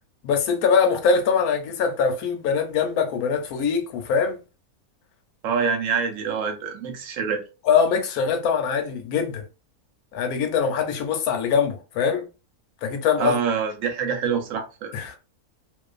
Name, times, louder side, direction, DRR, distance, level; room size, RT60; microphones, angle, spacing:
voice 1, 0.2-4.4 7.7-9.4 10.1-12.3 12.8-13.4 14.9-15.2, left 6 dB, 75° left, 1.1 m, -22 dB
voice 2, 5.4-7.4 13.2-14.9, right 6 dB, 65° right, 1.0 m, -25 dB
2.4 x 2.3 x 2.3 m
omnidirectional pair, 1.6 m